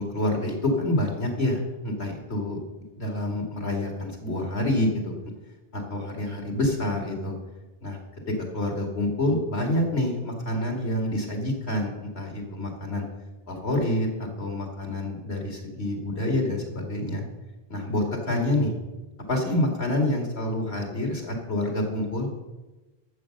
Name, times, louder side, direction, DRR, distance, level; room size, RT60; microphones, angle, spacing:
voice 1, 0.0-2.6 3.0-5.1 5.7-7.3 7.8-8.0 8.5-13.0 13.5-17.3 17.7-18.7 19.3-22.3, left 1 dB, 75° left, 2 dB, 2.6 m, -27 dB
12.5 x 7.6 x 6.6 m, 1.1 s
omnidirectional pair, 1.1 m